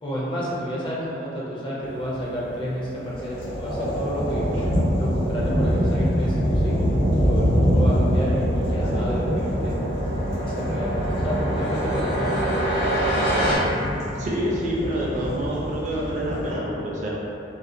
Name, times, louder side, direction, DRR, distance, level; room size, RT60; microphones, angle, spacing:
voice 1, 0.0-4.5 5.0-9.7 10.4-10.9 11.2-12.7, equal, 25° left, -7 dB, 0.4 m, -31 dB
sound 1, 1.8-13.6, right 1 dB, 80° left, 0.6 m, -30 dB
sound 2, 3.0-16.5, equal, 60° left, 0.9 m, -25 dB
voice 2, 14.2-17.1, equal, 40° right, -5 dB, 0.4 m, -27 dB
2.4 x 2.1 x 2.5 m, 2.8 s
head